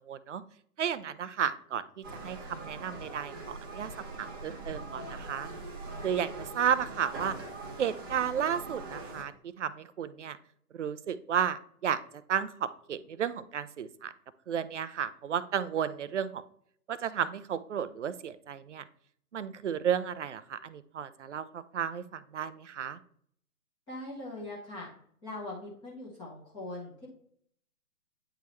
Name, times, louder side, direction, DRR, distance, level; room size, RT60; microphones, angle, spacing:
voice 1, 0.1-0.4 0.8-3.9 4.2-5.5 6.0-7.4 7.8-9.3 9.6-10.4 10.7-12.0 12.3-14.1 14.5-16.4 16.9-18.8 19.3-23.0, right 8 dB, 50° right, 15 dB, 0.5 m, -33 dB
sound 1, 2.0-9.2, right 2 dB, 15° right, 0.7 m, -42 dB
voice 2, 23.9-24.9 25.2-27.1, left 2 dB, 10° left, -6 dB, 1.0 m, -41 dB
9.0 x 3.8 x 3.0 m, 0.62 s
figure-of-eight pair, 135°, 46 cm